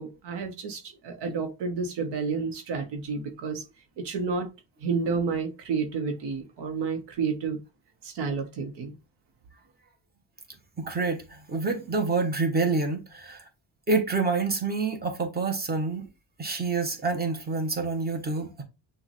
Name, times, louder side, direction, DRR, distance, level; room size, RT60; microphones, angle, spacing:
voice 1, 0.0-3.6 4.0-4.5 4.8-7.6 8.0-9.0, right 5 dB, 85° right, 1.1 m, -30 dB
voice 2, 10.8-13.5 13.9-16.1 16.4-18.6, right 4 dB, 25° right, 1.2 m, -27 dB
6.3 x 2.5 x 3.2 m
cardioid pair, 110°, 40 cm